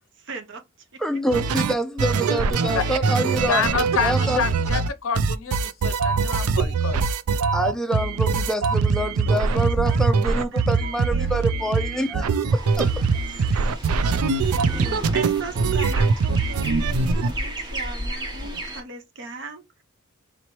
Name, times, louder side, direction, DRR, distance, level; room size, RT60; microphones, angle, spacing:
voice 1, 0.2-1.0 1.5-1.6 2.8-3.3 9.3-11.9 13.3-14.1 14.4-19.8, right 3 dB, 55° right, 0.8 m, -38 dB
voice 2, 1.0-3.6 4.0-4.4 7.5-13.1, right 1 dB, ahead, 0.4 m, -26 dB
sound 1, 1.3-4.9 5.1-17.3, right 4 dB, 90° right, 0.4 m, -22 dB
voice 3, 3.5-7.0, left 6 dB, 65° left, 0.6 m, -27 dB
sound 2, 12.5-18.8, equal, 20° right, 0.8 m, -32 dB
4.0 x 3.0 x 3.0 m
head